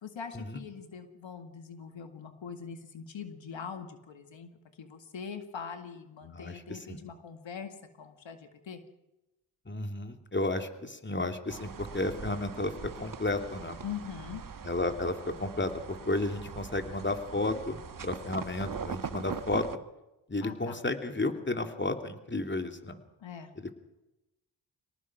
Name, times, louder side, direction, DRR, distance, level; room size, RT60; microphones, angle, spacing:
voice 1, 0.0-4.5 4.8-8.8 13.8-14.4 20.4-20.8 23.2-23.5, left 7 dB, 70° left, 7 dB, 2.1 m, -42 dB
voice 2, 6.3-7.0 9.7-13.8 14.6-19.7 20.3-23.0 23.6-23.7, left 2 dB, 25° left, 5 dB, 3.0 m, -33 dB
slow steps on snow, 11.5-19.8, right 6 dB, 45° right, 1.2 m, -42 dB
25.5 x 18.5 x 6.2 m, 0.96 s
supercardioid pair, 45°, 47 cm